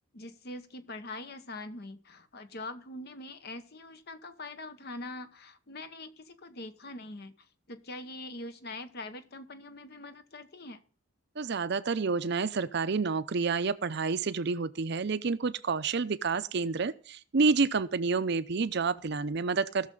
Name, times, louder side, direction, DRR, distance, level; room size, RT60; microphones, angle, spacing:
voice 1, 0.1-7.3 7.7-10.8, left 2 dB, 50° left, 10 dB, 0.9 m, -43 dB
voice 2, 11.4-19.9, right 4 dB, 55° right, 13 dB, 0.6 m, -29 dB
17.5 x 6.5 x 3.8 m, 0.42 s
head